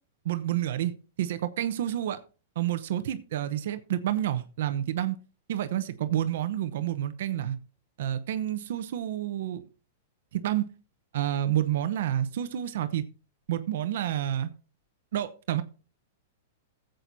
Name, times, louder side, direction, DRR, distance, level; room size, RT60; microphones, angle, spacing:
voice 1, 0.2-0.9 1.2-2.2 2.6-5.2 5.5-7.6 8.0-9.6 10.3-10.7 11.1-13.0 13.5-14.5 15.1-15.6, right 12 dB, 65° right, 11 dB, 0.8 m, -29 dB
15.5 x 7.7 x 2.7 m, 0.34 s
supercardioid pair, 160°, 0 cm